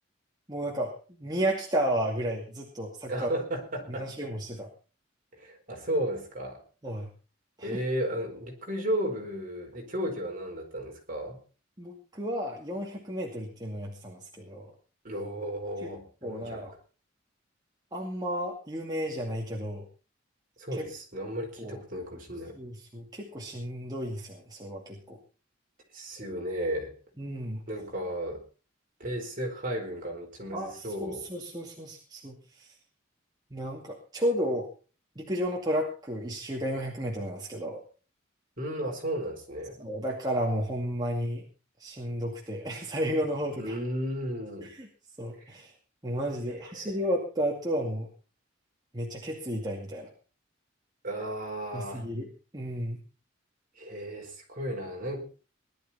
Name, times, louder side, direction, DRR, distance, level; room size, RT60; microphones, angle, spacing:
voice 1, 0.5-3.3 4.0-4.7 6.8-7.1 7.6-7.8 11.8-14.7 15.8-15.9 16.2-16.7 17.9-19.8 20.7-20.9 21.6-21.8 22.6-25.2 27.2-27.6 30.5-32.7 33.5-34.7 35.2-37.8 39.8-41.4 41.8-43.8 44.8-44.9 45.2-45.7 46.0-48.1 48.9-50.1 51.7-52.3 52.5-53.0, equal, 20° right, -2 dB, 2.4 m, -32 dB
voice 2, 3.1-4.1 5.3-6.6 7.6-11.4 15.0-16.6 20.6-22.6 25.9-26.9 27.7-28.4 29.0-31.3 38.6-39.7 43.6-44.7 46.5-47.0 51.0-52.1 53.8-55.2, equal, 45° right, 1 dB, 4.4 m, -34 dB
19.5 x 12.0 x 4.3 m, 0.36 s
head